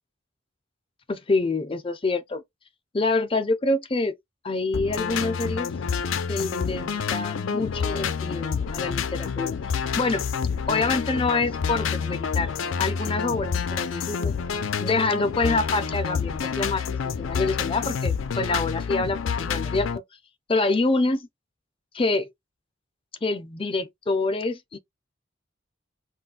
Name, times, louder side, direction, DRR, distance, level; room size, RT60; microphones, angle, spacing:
voice 1, 1.1-2.4 2.9-4.2 4.4-5.7 6.3-9.6 10.0-10.2 10.7-14.3 14.8-20.0 20.5-21.2 21.9-22.3 23.2-24.8, left 3 dB, 30° left, 0.5 m, -26 dB
sound 1, 4.7-20.0, left 6 dB, 85° left, 0.4 m, -28 dB
2.4 x 2.2 x 3.8 m
head